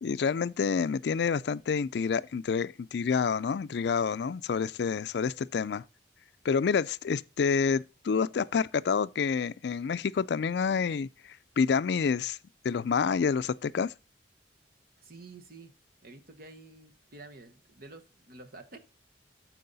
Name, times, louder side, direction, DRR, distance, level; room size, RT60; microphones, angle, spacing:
voice 1, 0.0-5.8 6.4-11.1 11.6-12.4 12.6-13.9, left 6 dB, 65° left, 0.4 m, -28 dB
voice 2, 15.0-15.7 16.0-18.8, right 2 dB, 55° right, 1.2 m, -49 dB
13.5 x 4.7 x 4.0 m
head